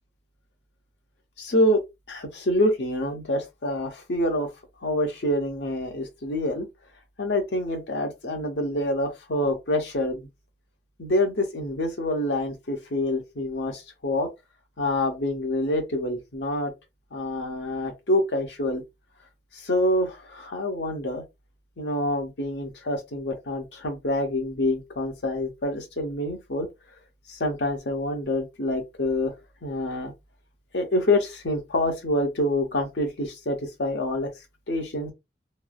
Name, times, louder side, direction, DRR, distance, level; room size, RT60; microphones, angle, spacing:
voice 1, 1.4-1.8 2.1-4.5 4.8-6.7 7.2-10.3 11.0-14.3 14.8-16.7 17.1-18.8 19.5-21.2 21.8-26.7 27.3-29.3 29.6-30.1 30.7-34.3 34.7-35.1, left 1 dB, 70° left, 0.9 m, -26 dB
3.1 x 2.0 x 2.3 m
head